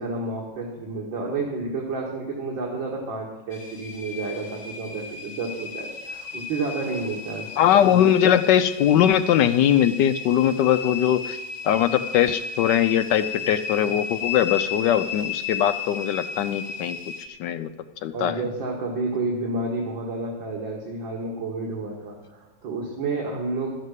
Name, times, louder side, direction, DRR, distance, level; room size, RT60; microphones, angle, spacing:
voice 1, 0.0-7.5 7.9-8.0 18.1-23.7, right 3 dB, 75° right, -2 dB, 2.4 m, -30 dB
sound 1, 3.5-17.3, left 6 dB, 50° left, 1.3 m, -34 dB
voice 2, 7.6-11.4 11.6-17.0 17.4-17.7 18.0-18.4, left 10 dB, 70° left, 11 dB, 1.1 m, -21 dB
12.0 x 7.5 x 8.1 m, 1.2 s
omnidirectional pair, 2.1 m